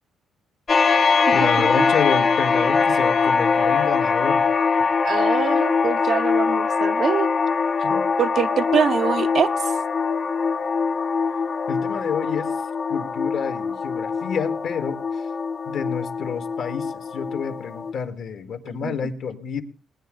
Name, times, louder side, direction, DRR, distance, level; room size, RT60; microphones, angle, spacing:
sound 1, 0.7-17.9, left 5 dB, 40° left, 1.1 m, -22 dB
voice 1, 1.3-4.5 7.8-8.1 11.7-12.5 12.9-15.3 15.7-19.6, left 6 dB, 65° left, 7 dB, 1.9 m, -29 dB
voice 2, 5.0-7.3 8.2-9.5 18.8-18.9, right 7 dB, 60° right, 9 dB, 0.8 m, -24 dB
20.5 x 9.8 x 3.8 m, 0.35 s
cardioid pair, 90°, 0 cm